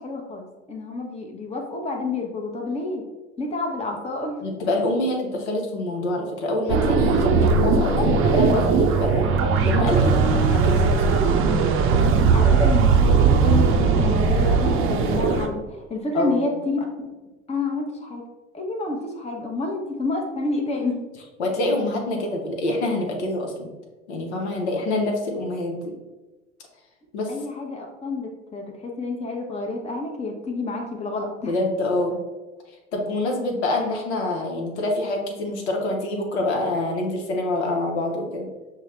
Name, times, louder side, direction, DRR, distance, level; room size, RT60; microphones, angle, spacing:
voice 1, 0.0-3.0 3.4-4.4 8.0-8.1 10.2-10.3 12.3-13.1 13.4-17.1 17.5-18.2 18.5-21.0 27.3-31.6, left 3 dB, 20° left, 1 dB, 0.8 m, -29 dB
voice 2, 4.4-9.4 9.6-10.9 11.3-11.4 12.4-12.7 16.1-16.5 21.4-23.7 24.1-26.0 27.1-27.4 31.5-32.2 32.7-38.5, left 2 dB, 70° left, 1 dB, 0.8 m, -26 dB
sound 1, 6.7-15.5, right 5 dB, 40° right, 0.6 m, -19 dB
6.5 x 2.2 x 3.1 m, 1.1 s
figure-of-eight pair, 60°, 35 cm